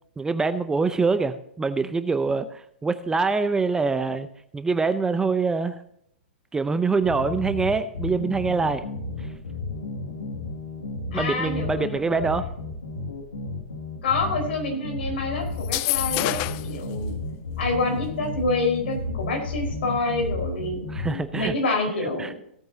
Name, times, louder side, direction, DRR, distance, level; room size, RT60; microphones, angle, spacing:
voice 1, 0.2-4.3 4.5-5.8 6.5-8.9 9.2-9.3 11.1-12.5 20.9-21.5 22.2-22.3, right 4 dB, 10° right, 11 dB, 0.6 m, -25 dB
sound 1, 7.0-21.5, left 2 dB, 80° left, 2.2 m, -33 dB
voice 2, 11.1-12.3 14.0-17.1 17.6-20.8 21.3-22.3, left 3 dB, 65° left, 3 dB, 4.5 m, -27 dB
sound 2, 15.6-16.8, left 20 dB, 40° left, 0.4 m, -26 dB
17.0 x 8.7 x 2.8 m, 0.70 s
hypercardioid pair, 110°, 6 cm